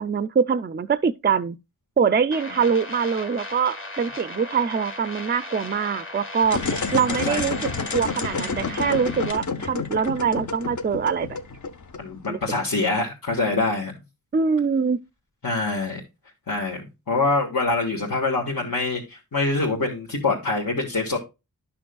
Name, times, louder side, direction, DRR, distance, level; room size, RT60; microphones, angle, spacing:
voice 1, 0.0-1.6 2.0-6.6 6.9-7.6 7.9-11.3 12.3-12.4 14.3-15.0, right 6 dB, 30° right, 0.4 m, -23 dB
sound 1, 2.3-9.3, left 2 dB, 35° left, 1.4 m, -37 dB
sound 2, 6.4-12.3, left 4 dB, 55° left, 0.8 m, -29 dB
voice 2, 7.1-7.5 12.0-13.9 15.4-16.0 16.5-21.2, left 3 dB, 70° left, 1.7 m, -25 dB
11.5 x 6.1 x 2.3 m
wide cardioid pair, 80°, 35 cm